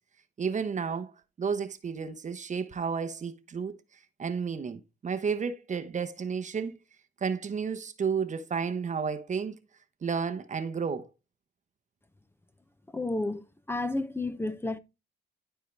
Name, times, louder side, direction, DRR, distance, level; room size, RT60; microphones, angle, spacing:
voice 1, 0.4-1.1 1.4-3.8 4.2-6.8 7.2-9.6 10.0-11.1, right 6 dB, 40° right, 0.9 m, -32 dB
voice 2, 12.9-14.8, left 2 dB, 10° left, 0.7 m, -31 dB
11.5 x 4.6 x 3.3 m
cardioid pair, 90°, 20 cm